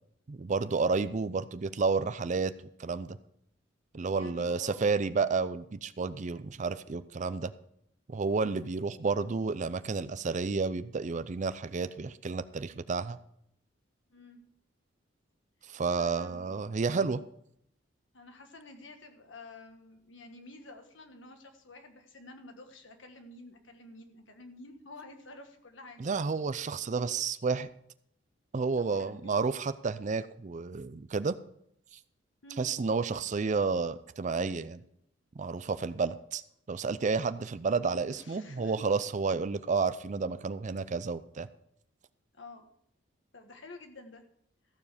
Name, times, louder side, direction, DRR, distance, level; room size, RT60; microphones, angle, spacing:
voice 1, 0.3-2.5 2.8-3.2 3.9-7.5 8.1-13.2 15.7-17.2 26.0-27.7 28.5-31.4 32.6-34.8 35.4-36.4 36.7-41.5, right 4 dB, 40° right, 13 dB, 0.5 m, -31 dB
voice 2, 4.1-5.0 14.1-14.4 15.9-16.5 18.1-26.1 28.8-29.4 32.4-32.7 38.1-38.9 42.3-42.7 43.3-44.2, left 2 dB, 70° left, 5 dB, 1.5 m, -50 dB
14.5 x 7.1 x 5.0 m, 0.72 s
head